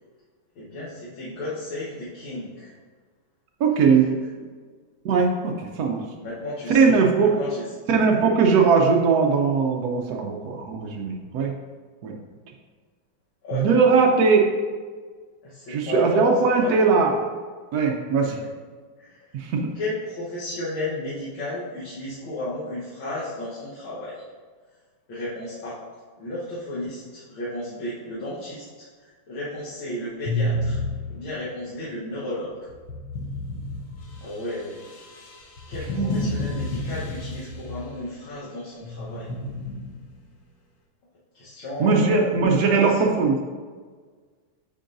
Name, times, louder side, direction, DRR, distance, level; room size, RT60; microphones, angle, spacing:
voice 1, 0.6-2.7 6.2-6.8 7.2-7.6 13.4-13.6 15.4-16.3 16.6-16.9 18.4-18.5 19.0-19.2 19.8-24.2 25.1-25.8 26.2-28.9 29.3-30.8 31.1-32.5 34.2-34.8 35.7-39.3 41.3-42.2 42.6-43.1, left 1 dB, 75° left, -9 dB, 2.0 m, -33 dB
voice 2, 3.6-4.1 5.0-6.0 6.7-7.4 7.9-11.5 12.0-12.1 13.5-14.5 15.7-17.2 17.7-18.4 19.3-19.6 36.0-36.3 41.8-43.4, right 5 dB, 75° right, 1 dB, 0.8 m, -20 dB
sound 1, 30.3-31.5 32.7-38.1 38.8-40.2, left 1 dB, 60° left, 1.1 m, -31 dB
9.1 x 4.6 x 2.6 m, 1.5 s
omnidirectional pair, 2.3 m